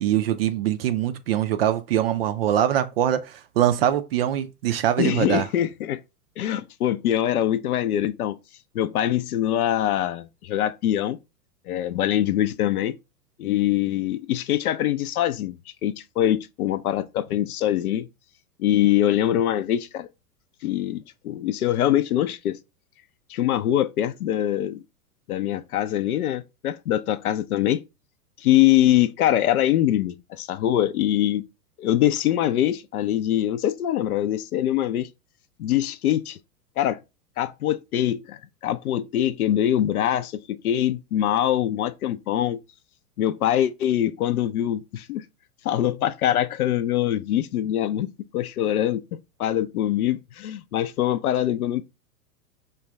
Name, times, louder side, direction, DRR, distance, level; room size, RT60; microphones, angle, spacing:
voice 1, 0.0-5.5, right 11 dB, 40° right, 0.4 m, -23 dB
voice 2, 5.0-6.0 6.4-8.4 8.7-11.2 11.7-13.0 13.4-18.1 18.6-20.1 20.6-22.6 23.3-24.8 25.3-27.8 28.4-31.4 31.8-35.1 35.6-36.4 36.8-37.0 37.4-42.6 43.2-45.2 45.6-48.1 48.3-49.0 49.4-51.8, left 12 dB, 65° left, 0.5 m, -23 dB
5.1 x 2.2 x 3.4 m
figure-of-eight pair, 100°, 47 cm